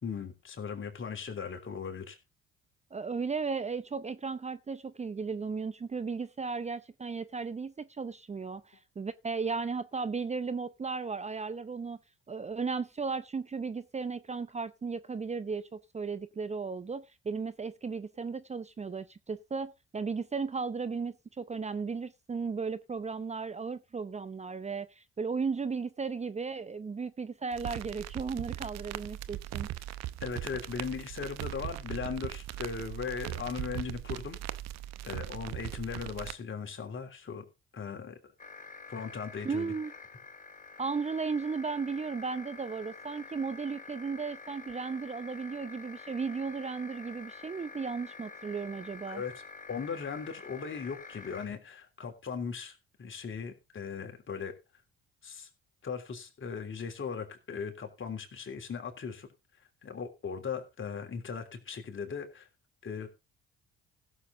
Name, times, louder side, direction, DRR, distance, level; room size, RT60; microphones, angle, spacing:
voice 1, 0.0-2.2 30.2-34.4 35.0-37.4 37.7-38.2 38.9-39.7 49.1-49.4 49.7-54.5 55.2-55.5 55.8-59.3 59.8-62.5 62.8-63.1, left 6 dB, 45° left, 3.2 m, -38 dB
voice 2, 2.9-12.0 12.3-29.7 39.4-39.9 40.8-49.2, right 5 dB, 25° right, 0.7 m, -35 dB
sound 1, 27.5-36.3, right 14 dB, 65° right, 0.8 m, -39 dB
sound 2, 38.4-51.5, left 4 dB, 25° left, 1.4 m, -48 dB
16.5 x 7.2 x 3.6 m
hypercardioid pair, 55°, 29 cm